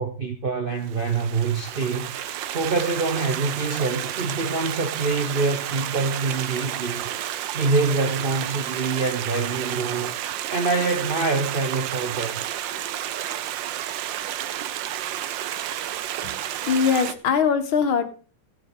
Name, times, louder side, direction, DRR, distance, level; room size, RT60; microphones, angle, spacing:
voice 1, 0.0-7.0 7.5-10.2 10.5-12.4, right 3 dB, 55° right, 0.6 m, -25 dB
Stream, 0.8-17.1, right 11 dB, 70° right, 1.4 m, -31 dB
voice 2, 16.7-18.0, left 6 dB, 85° left, 2.2 m, -21 dB
16.0 x 7.6 x 3.9 m
omnidirectional pair, 2.2 m